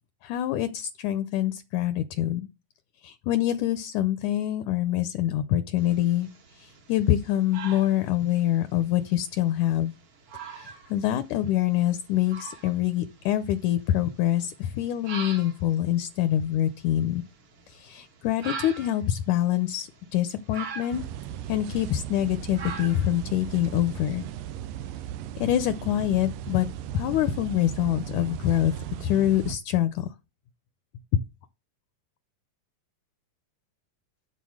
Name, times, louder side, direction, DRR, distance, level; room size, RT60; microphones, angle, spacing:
voice 1, 0.2-2.5 3.0-6.3 6.6-9.9 10.5-17.2 17.7-21.0 21.5-24.2 25.4-26.7 26.9-28.7 29.0-30.1 31.1-31.2, left 12 dB, 80° left, 1.8 m, -25 dB
sound 1, 5.8-24.5, right 6 dB, 50° right, 1.8 m, -44 dB
sound 2, 20.9-29.6, right 11 dB, 80° right, 2.2 m, -37 dB
11.0 x 4.0 x 6.3 m
omnidirectional pair, 3.9 m